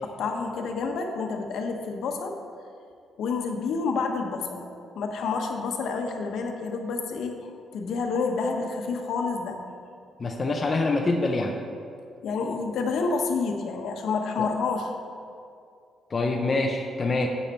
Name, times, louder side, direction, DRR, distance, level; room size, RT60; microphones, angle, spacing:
voice 1, 0.0-2.3 3.2-4.7 4.9-9.6 12.2-14.9, left 4 dB, 65° left, 3 dB, 1.1 m, -29 dB
voice 2, 10.2-11.6 14.4-14.5 16.1-17.3, left 2 dB, 25° left, 1 dB, 0.6 m, -25 dB
10.5 x 8.3 x 4.3 m, 2.4 s
cardioid pair, 180°, 0 cm